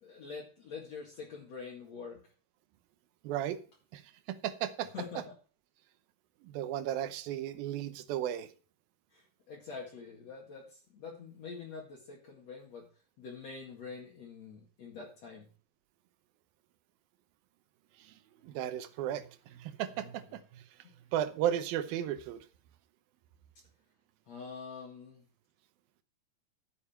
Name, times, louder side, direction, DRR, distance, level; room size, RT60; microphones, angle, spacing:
voice 1, 0.0-2.3 4.9-5.2 9.1-12.9 13.2-15.5 20.0-20.1 20.8-20.9 24.3-25.2, left 5 dB, 50° left, 3.0 m, -45 dB
voice 2, 3.2-3.6 3.9-4.9 6.4-8.5 18.0-18.1 18.4-20.6 21.1-22.5, right 11 dB, 90° right, 2.7 m, -35 dB
13.0 x 8.3 x 4.4 m
omnidirectional pair, 4.1 m